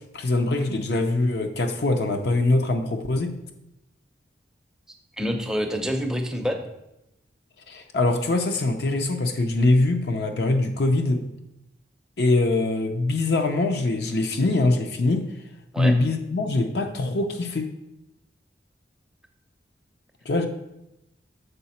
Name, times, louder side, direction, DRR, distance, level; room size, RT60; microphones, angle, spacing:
voice 1, 0.1-3.3 7.7-11.2 12.2-15.2 15.8-17.7 20.3-20.5, left 2 dB, 60° left, 5 dB, 0.6 m, -23 dB
voice 2, 5.2-6.7 15.7-15.9, equal, 5° right, 3 dB, 0.5 m, -27 dB
6.8 x 4.8 x 4.2 m, 0.89 s
head